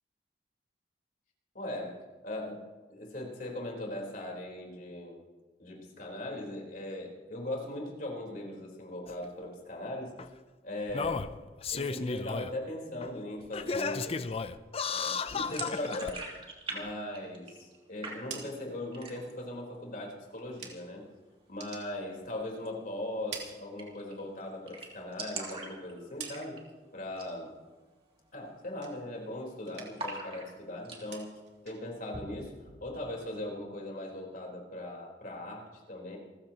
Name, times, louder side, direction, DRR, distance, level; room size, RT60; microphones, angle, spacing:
voice 1, 1.5-2.0 2.2-2.6 2.9-5.2 5.6-10.1 10.6-11.3 11.7-14.3 14.9-16.3 16.7-21.0 21.5-26.6 26.9-27.5 28.3-36.2, left 1 dB, 50° left, -1 dB, 4.1 m, -39 dB
Singing, 9.1-9.2 10.2-10.3 10.9-12.5 13.0-13.1 13.5-16.1 16.9-17.0, left 4 dB, 35° left, 0.5 m, -34 dB
sound 1, 15.4-16.8 17.0-17.8 18.0-18.6 18.9-19.4 19.8-19.9 20.2-20.9 22.5-22.7 23.0-23.1 23.3-23.4 23.8-24.1 24.4-24.5 24.7-26.7 27.1-27.4 27.7-27.8 28.3-28.6 28.9-29.5 30.0-31.0, right 3 dB, 30° right, 2.9 m, -42 dB
sound 2, 18.0-21.1 21.4-22.7 23.0-24.3 24.7-26.8 27.2-27.7 28.0-29.3 29.6-30.2 30.5-33.3, right 6 dB, 70° right, 2.7 m, -49 dB
28.5 x 14.5 x 3.0 m, 1.2 s
head